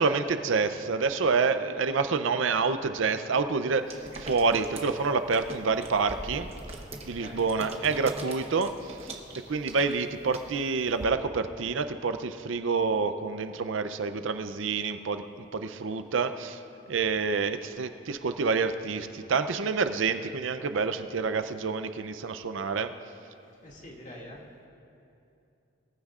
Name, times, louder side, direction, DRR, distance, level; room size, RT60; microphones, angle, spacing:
voice 1, 0.0-6.5 7.1-9.2 9.5-15.2 15.5-16.6 16.9-22.9, right 4 dB, 75° right, 10 dB, 0.5 m, -28 dB
sound 1, 3.9-11.0, right 2 dB, 30° right, 1.0 m, -42 dB
voice 2, 7.1-7.9 23.6-24.4, left 1 dB, 40° left, -3 dB, 2.2 m, -45 dB
22.0 x 15.5 x 2.5 m, 2.7 s
head